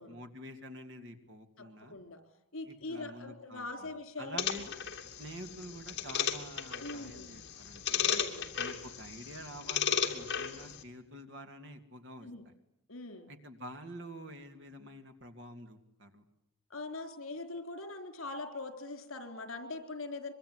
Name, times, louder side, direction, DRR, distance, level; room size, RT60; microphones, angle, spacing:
voice 1, 0.0-2.0 2.7-3.9 4.2-4.7 5.2-8.1 8.6-12.5 13.3-16.3, right 1 dB, 55° right, 6 dB, 2.7 m, -48 dB
voice 2, 1.6-2.2 2.5-4.4 6.8-7.4 7.9-8.5 12.2-12.4 12.9-13.3 16.7-20.3, left 2 dB, 70° left, 8 dB, 3.9 m, -42 dB
sound 1, 4.4-10.8, left 8 dB, 55° left, 2.8 m, -35 dB
25.0 x 23.0 x 9.8 m, 0.77 s
head